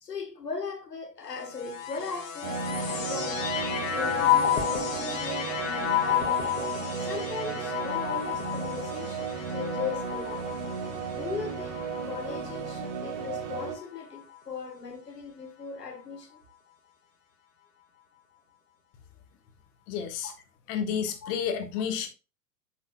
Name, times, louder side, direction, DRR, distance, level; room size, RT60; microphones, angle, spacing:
voice 1, 0.0-3.4 3.9-6.4 7.0-10.6 11.2-16.4 20.2-20.3 21.2-21.3, left 5 dB, 75° left, 1.5 m, -38 dB
sound 1, 1.4-12.8 13.6-14.4, left 10 dB, 55° left, 1.6 m, -31 dB
sound 2, 2.4-13.8, right 6 dB, 45° right, 1.8 m, -34 dB
voice 2, 19.9-20.3 20.7-22.1, left 7 dB, 35° left, 1.4 m, -30 dB
7.8 x 6.6 x 2.2 m
figure-of-eight pair, 100°, 48 cm